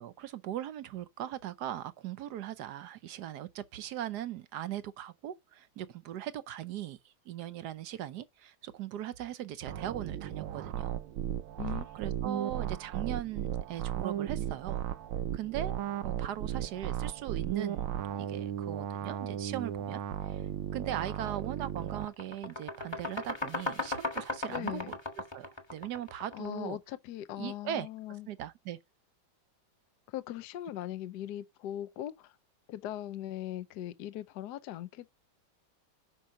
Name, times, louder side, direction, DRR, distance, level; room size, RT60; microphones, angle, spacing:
voice 1, 0.0-10.9 11.9-14.9 15.3-15.8 16.0-17.9 18.2-20.4 20.7-25.0 25.3-26.8 27.4-27.9 28.3-28.8, right 11 dB, 65° right, 1.1 m, -39 dB
sound 1, 9.7-22.1, right 10 dB, 85° right, 1.6 m, -35 dB
voice 2, 11.6-11.9 12.2-12.4 24.5-24.9 26.3-28.3 30.1-32.4 32.7-35.1, left 12 dB, 65° left, 1.1 m, -40 dB
sound 2, 21.1-21.3 21.6-26.6, left 2 dB, 15° left, 1.3 m, -37 dB
10.0 x 5.6 x 5.7 m
omnidirectional pair, 2.3 m